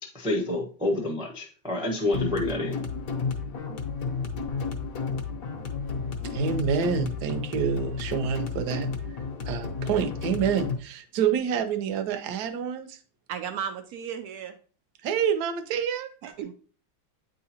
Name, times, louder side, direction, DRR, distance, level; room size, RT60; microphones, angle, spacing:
voice 1, 0.0-2.8, left 2 dB, 5° right, 0 dB, 0.4 m, -28 dB
sound 1, 2.1-10.8, left 5 dB, 55° left, 1.1 m, -32 dB
voice 2, 6.3-8.9 9.5-13.0 15.0-16.1, right 7 dB, 65° right, 7 dB, 1.1 m, -27 dB
voice 3, 13.3-14.6 16.2-16.5, right 8 dB, 85° right, 7 dB, 0.8 m, -34 dB
8.9 x 3.8 x 2.8 m, 0.39 s
omnidirectional pair, 2.2 m